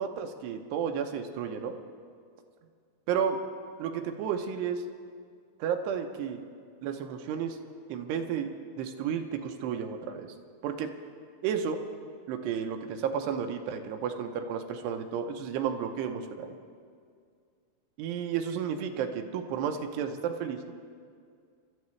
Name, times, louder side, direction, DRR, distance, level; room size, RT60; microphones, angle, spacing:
voice 1, 0.0-1.7 3.1-3.4 3.8-4.8 5.6-6.4 6.8-7.6 7.9-8.5 8.8-10.3 10.6-10.9 11.4-11.8 12.3-16.6 18.0-20.7, right 7 dB, 90° right, 5 dB, 2.9 m, -32 dB
25.0 x 13.0 x 3.2 m, 2.2 s
omnidirectional pair, 4.7 m